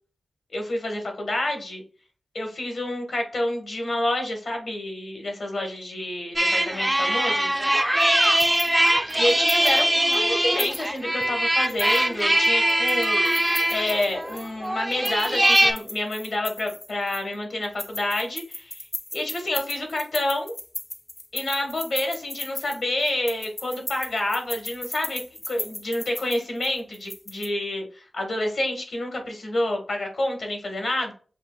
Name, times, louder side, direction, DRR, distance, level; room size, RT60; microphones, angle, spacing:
voice 1, 0.5-1.8 2.3-7.5 9.1-9.8 10.1-13.2 13.7-18.9 19.1-20.5 21.3-25.2 25.5-31.1, left 1 dB, 75° left, 2 dB, 1.3 m, -28 dB
sound 1, 6.4-15.7, right 1 dB, 10° right, 0.4 m, -22 dB
sound 2, 8.0-9.8 10.1-10.2 10.6-11.2 11.6-14.5 14.9-17.3 17.6-27.5, left 2 dB, 40° left, 0.5 m, -36 dB
7.0 x 2.5 x 2.2 m, 0.39 s
wide cardioid pair, 65°, 0 cm